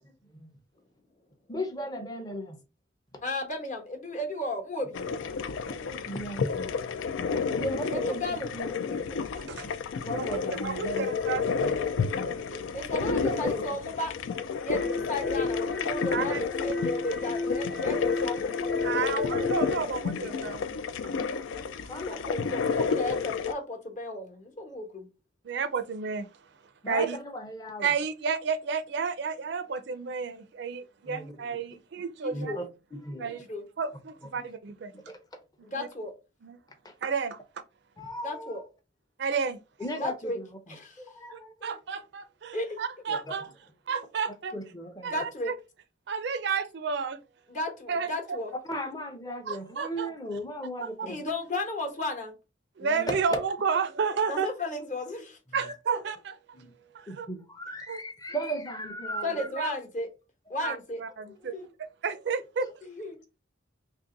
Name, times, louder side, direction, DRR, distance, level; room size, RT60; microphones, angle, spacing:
voice 1, 1.5-2.6 5.6-6.7 7.5-8.3 8.5-9.2 9.5-9.7 10.1-11.1 11.7-13.7 21.9-22.3 26.8-27.9 31.1-31.4 32.0-32.6 32.9-33.4 34.9-35.2 36.8-36.9 38.0-38.7 39.8-41.8 43.1-43.3 44.5-45.2 48.6-51.3 52.8-53.4 55.5-55.7 56.5-56.7 57.1-59.7 60.5-60.6 61.3-61.7 62.6-62.7, equal, 20° left, 0.6 m, -37 dB
voice 2, 3.2-5.0 7.9-8.5 12.7-14.1 14.6-18.5 21.9-25.1 32.2-32.6 33.3-33.6 35.6-36.1 38.2-38.6 40.0-40.4 40.7-41.0 42.5-42.8 45.1-45.5 47.5-48.5 51.1-52.3 54.3-55.4 59.2-60.1 60.5-61.0 61.5-61.7 62.8-63.2, left 1 dB, 40° left, 1.0 m, -34 dB
sound 1, 4.9-23.5, left 5 dB, 90° left, 0.3 m, -31 dB
voice 3, 10.3-11.8 16.1-16.4 18.8-20.8 25.4-26.3 26.8-27.2 27.8-32.6 33.2-33.5 33.8-34.9 35.7-35.9 36.4-36.6 37.0-37.4 39.2-39.6 41.3-43.5 43.9-44.5 45.0-45.5 46.1-47.2 47.9-48.4 49.5-50.1 50.8-50.9 51.5-51.6 52.8-54.5 55.5-56.4 56.9-57.3 57.9-58.0 59.2-59.7 60.6-61.5 61.8-62.7, right 5 dB, 65° right, 0.4 m, -31 dB
sound 2, 14.8-19.8, left 2 dB, 70° left, 0.8 m, -33 dB
2.9 x 2.6 x 3.7 m
head